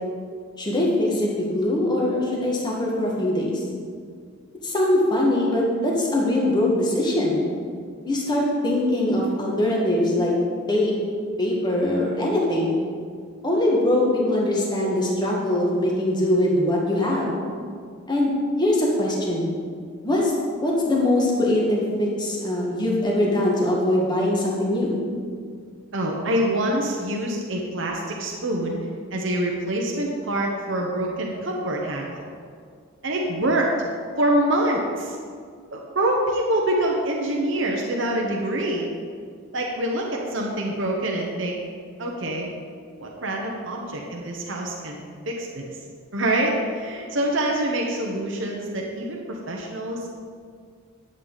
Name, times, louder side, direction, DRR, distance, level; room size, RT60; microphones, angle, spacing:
voice 1, 0.6-3.6 4.6-7.4 8.0-10.3 10.7-10.9 11.4-12.7 13.4-17.3 18.1-18.3 18.6-19.5 20.0-20.3 20.6-25.0, left 1 dB, 20° left, -3 dB, 1.7 m, -22 dB
voice 2, 25.9-28.8 29.1-32.3 33.0-33.7 34.2-35.2 35.7-38.9 39.5-41.6 42.0-42.5 43.0-45.6 46.1-50.1, right 1 dB, 60° right, -1 dB, 1.0 m, -25 dB
11.0 x 8.0 x 4.0 m, 2.1 s
head